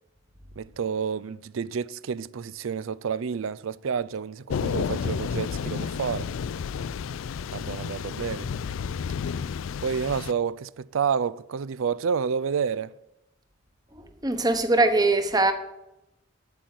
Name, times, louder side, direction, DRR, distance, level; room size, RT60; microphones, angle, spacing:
voice 1, 0.5-6.3 7.5-8.5 9.8-12.9, right 6 dB, 75° right, 0.4 m, -29 dB
Thunder / Rain, 4.5-10.3, left 6 dB, 75° left, 0.3 m, -31 dB
voice 2, 13.9-15.5, right 2 dB, 20° right, 1.0 m, -22 dB
9.2 x 8.4 x 9.3 m
head